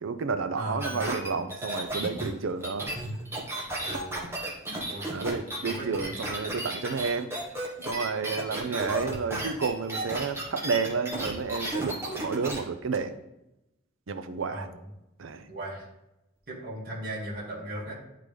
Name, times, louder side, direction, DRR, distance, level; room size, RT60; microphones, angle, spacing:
voice 1, 0.0-2.9 5.1-7.3 7.8-13.2 14.1-14.7 15.2-15.5, right 5 dB, 80° right, 10 dB, 0.5 m, -31 dB
voice 2, 0.6-1.0 3.8-4.3 4.9-5.1 5.6-6.1 14.5-14.8 15.5-15.9 16.5-17.9, right 1 dB, 45° right, -7 dB, 2.1 m, -37 dB
sound 1, 0.8-12.6 12.9-13.0, right 1 dB, 10° right, 1.2 m, -34 dB
10.5 x 3.8 x 3.3 m, 0.89 s
head